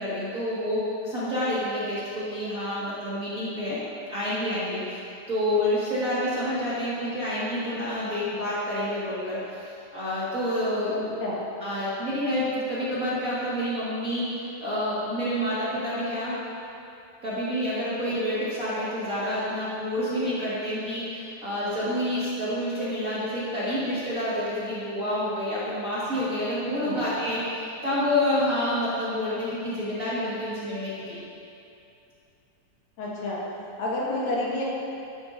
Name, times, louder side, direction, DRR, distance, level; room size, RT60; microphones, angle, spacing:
voice 1, 0.0-3.8 4.1-5.0 5.3-11.1 11.6-14.3 14.6-16.4 17.2-31.2, left 1 dB, 30° right, -11 dB, 1.8 m, -28 dB
voice 2, 10.9-11.4 26.7-27.0 33.0-33.4 33.8-34.6, left 2 dB, 80° left, -6 dB, 3.6 m, -29 dB
12.5 x 10.5 x 2.8 m, 2.6 s
omnidirectional pair, 4.0 m